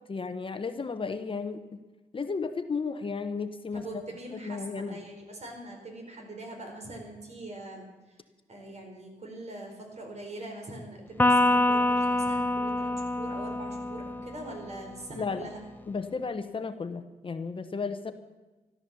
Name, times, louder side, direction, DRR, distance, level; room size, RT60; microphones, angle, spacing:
voice 1, 0.0-1.8 2.1-3.9 4.3-5.0 15.2-15.5 15.9-18.1, left 4 dB, 35° left, 9 dB, 1.0 m, -34 dB
voice 2, 3.7-8.1 8.5-15.6, right 2 dB, 50° right, 2 dB, 5.0 m, -42 dB
Electric guitar, 11.2-14.7, left 1 dB, 10° left, 0.6 m, -26 dB
14.0 x 13.0 x 7.1 m, 1.2 s
cardioid pair, 90°, 15 cm